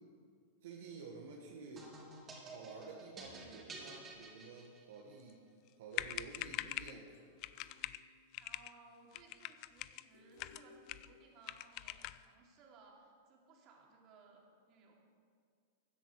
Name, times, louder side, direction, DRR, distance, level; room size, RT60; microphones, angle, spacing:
voice 1, 0.6-1.9 2.5-5.4 5.8-7.1, right 4 dB, 75° right, -2 dB, 1.7 m, -51 dB
sound 1, 1.8-5.1, right 3 dB, 25° right, 3.3 m, -51 dB
sound 2, 5.7-5.8 5.9-7.0 7.4-8.0 8.3-8.7 9.1-10.0 10.4-11.1 11.4-12.2, left 16 dB, 50° left, 0.4 m, -43 dB
sound 3, 6.7-8.6 10.1-11.6, left 2 dB, 80° left, 2.5 m, -63 dB
voice 2, 8.4-14.9, right 4 dB, 45° right, -1 dB, 3.0 m, -62 dB
16.0 x 10.5 x 4.9 m, 2.1 s
hypercardioid pair, 110°, 0 cm